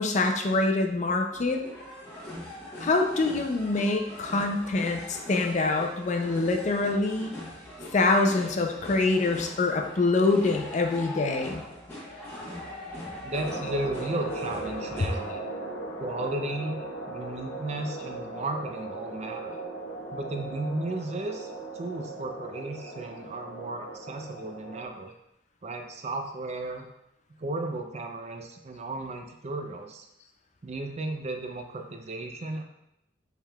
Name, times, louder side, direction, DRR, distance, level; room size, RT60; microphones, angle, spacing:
voice 1, 0.0-1.6 2.8-7.3 7.9-11.6, left 3 dB, 40° left, 3 dB, 0.5 m, -25 dB
sound 1, 1.3-15.3, left 1 dB, 15° left, 1.1 m, -42 dB
voice 2, 13.2-15.3 16.0-19.6 20.1-21.5 21.7-25.1 25.6-26.9 27.4-30.1 30.6-32.6, right 2 dB, 40° right, 4 dB, 0.4 m, -34 dB
sound 2, 13.3-24.8, right 2 dB, 80° left, 0.8 m, -38 dB
4.6 x 3.4 x 2.3 m, 0.83 s
head